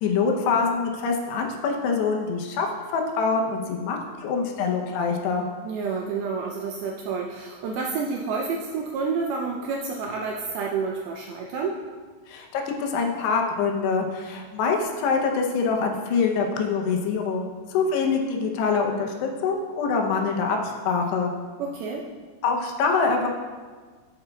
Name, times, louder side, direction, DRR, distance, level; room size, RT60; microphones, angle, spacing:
voice 1, 0.0-2.7 2.9-5.5 12.3-20.6 20.9-21.3 22.4-23.3, left 5 dB, 80° left, 2 dB, 2.8 m, -25 dB
voice 2, 5.6-11.8 21.6-22.1, right 5 dB, 85° right, -1 dB, 2.2 m, -29 dB
9.6 x 7.9 x 2.3 m, 1.5 s
omnidirectional pair, 4.9 m